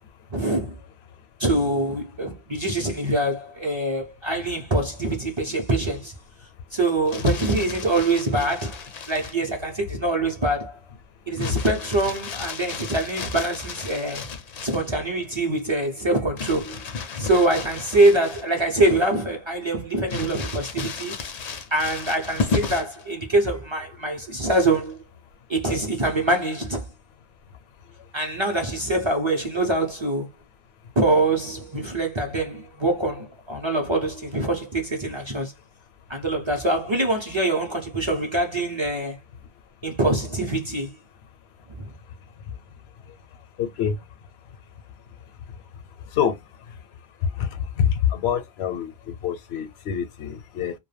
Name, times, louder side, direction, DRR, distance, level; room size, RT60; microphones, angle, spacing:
voice 1, 0.3-0.7 1.4-6.1 6.7-10.8 11.3-14.3 14.6-16.8 17.2-21.1 21.7-25.0 25.5-26.9 28.1-30.3 31.0-35.5 36.1-39.2 39.8-40.9 41.8-41.9, right 2 dB, 35° right, 0.5 m, -24 dB
Crumpling crinkling, 6.9-9.4 11.4-14.9 16.4-18.7 19.1-19.2 20.1-23.0 24.4-24.9, left 5 dB, 55° left, 0.5 m, -33 dB
voice 2, 43.6-44.0 46.2-46.4 47.4-47.5 47.8-50.7, left 8 dB, 80° left, 0.8 m, -25 dB
2.2 x 2.1 x 3.2 m
omnidirectional pair, 1.1 m